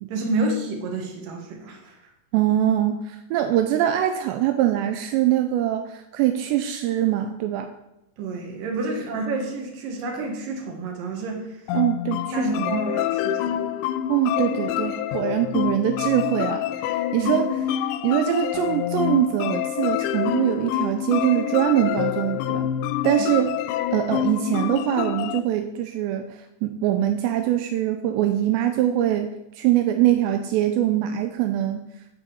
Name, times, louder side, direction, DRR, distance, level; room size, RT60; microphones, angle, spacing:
voice 1, 0.1-2.0 8.2-11.6 12.3-13.7 17.2-17.3, right 3 dB, 60° right, 1 dB, 2.9 m, -29 dB
voice 2, 2.3-7.7 11.7-12.8 14.1-16.6 16.9-17.5 18.0-22.7 23.0-23.5 23.9-31.9, right 12 dB, 85° right, 7 dB, 2.8 m, -23 dB
sound 1, 11.7-25.4, left 11 dB, 85° left, 2.8 m, -26 dB
8.1 x 5.2 x 7.0 m, 0.90 s
omnidirectional pair, 5.0 m